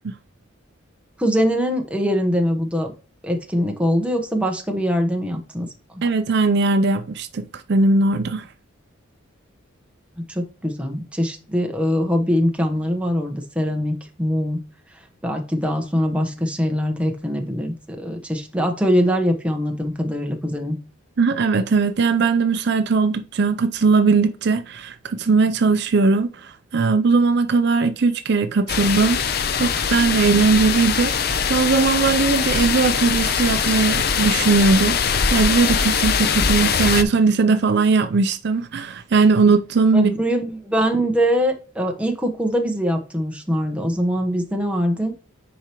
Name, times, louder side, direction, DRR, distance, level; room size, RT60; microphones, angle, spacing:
voice 1, 1.2-2.9 3.2-5.7 5.9-6.0 10.2-14.6 15.2-20.8 39.9-45.1, equal, 5° right, 1.0 m, -22 dB
voice 2, 6.0-8.5 21.2-29.2 29.5-40.1, right 4 dB, 55° right, 0.5 m, -19 dB
sound 1, 28.7-37.0, left 6 dB, 50° left, 0.6 m, -22 dB
10.0 x 4.7 x 3.0 m
head